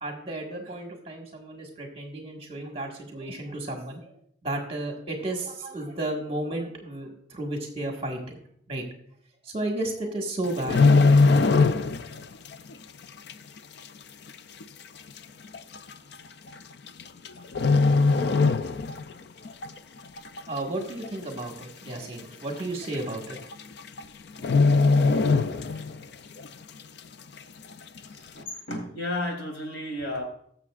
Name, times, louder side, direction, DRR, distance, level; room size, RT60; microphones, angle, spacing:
voice 1, 0.0-4.2 4.4-8.4 8.7-8.8 9.4-10.9 20.5-23.4, right 1 dB, 30° right, 2 dB, 1.7 m, -33 dB
sound 1, 10.4-12.2 12.5-12.7 13.3-13.4 14.3-14.4 14.6-14.7 15.5-15.8 16.9-17.3 17.5-19.1 19.5-19.7 20.2-20.7 21.0-21.1 21.4-21.5 21.9-22.0 22.9-23.0 23.3-23.6 23.9-24.0 24.4-26.0 26.4-26.5, left 3 dB, 55° left, 0.4 m, -20 dB
voice 2, 28.1-30.2, left 1 dB, 85° left, 1 dB, 3.2 m, -33 dB
19.5 x 6.9 x 2.4 m, 0.67 s
head